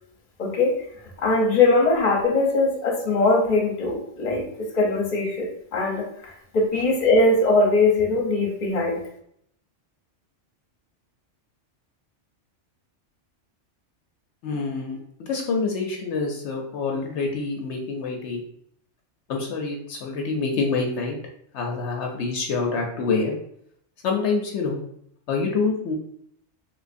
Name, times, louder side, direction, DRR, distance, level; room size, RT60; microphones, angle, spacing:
voice 1, 0.4-0.8 1.2-6.1 6.5-9.0, left 2 dB, 40° left, -1 dB, 0.8 m, -21 dB
voice 2, 14.4-18.4 19.3-21.2 21.5-23.3 24.0-24.8 25.3-25.9, left 4 dB, 75° left, 1 dB, 0.9 m, -26 dB
3.3 x 3.1 x 2.5 m, 0.70 s
omnidirectional pair, 1.2 m